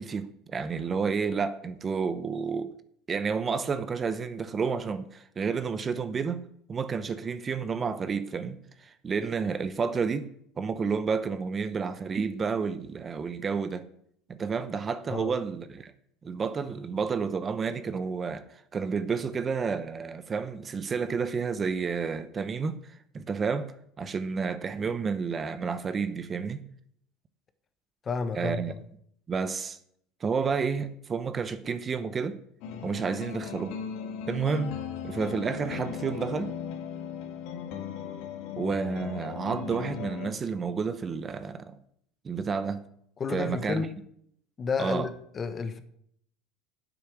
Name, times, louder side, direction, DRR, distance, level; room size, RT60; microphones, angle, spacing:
voice 1, 0.0-2.7 3.1-10.3 10.6-13.9 14.3-15.9 16.2-26.6 28.4-28.7 29.3-29.8 30.2-32.4 32.8-33.8 34.3-36.5 38.6-41.8 42.2-42.8 43.3-43.8 44.8-45.1, right 5 dB, 30° right, 0.8 m, -30 dB
voice 2, 28.0-28.8 43.2-43.9 44.6-45.8, left 5 dB, 30° left, 1.1 m, -31 dB
sound 1, 32.6-40.3, left 8 dB, 70° left, 1.5 m, -37 dB
9.2 x 7.9 x 6.1 m
supercardioid pair, 95°, 0 cm